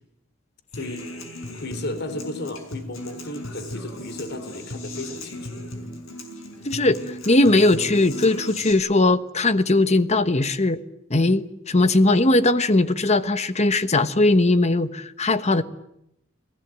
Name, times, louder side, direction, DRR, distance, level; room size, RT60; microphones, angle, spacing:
Human voice / Acoustic guitar, 0.7-8.7, left 1 dB, 80° left, 6.0 m, -37 dB
voice 1, 0.8-1.1 1.6-5.6, left 1 dB, 55° left, 10 dB, 3.6 m, -34 dB
voice 2, 6.6-10.8 11.1-15.6, left 2 dB, 35° left, 12 dB, 1.1 m, -19 dB
30.0 x 20.0 x 9.1 m, 0.81 s
head